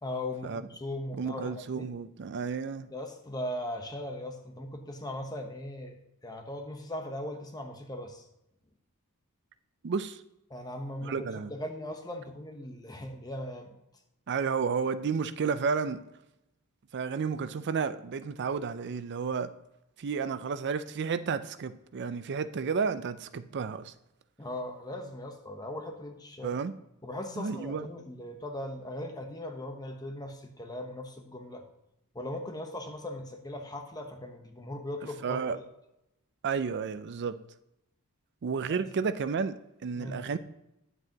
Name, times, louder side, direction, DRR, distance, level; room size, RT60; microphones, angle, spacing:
voice 1, 0.0-1.9 2.9-8.2 10.5-13.7 24.4-26.5 27.0-31.6 32.1-35.6 38.7-38.8 39.9-40.3, left 1 dB, 20° left, 1.0 m, -39 dB
voice 2, 1.2-2.9 9.8-10.2 11.0-11.5 14.3-16.0 16.9-19.5 20.0-23.9 26.4-26.7 27.4-27.9 35.2-35.6 36.4-37.4 38.4-40.4, right 5 dB, 50° right, 0.4 m, -32 dB
9.5 x 7.9 x 2.9 m
head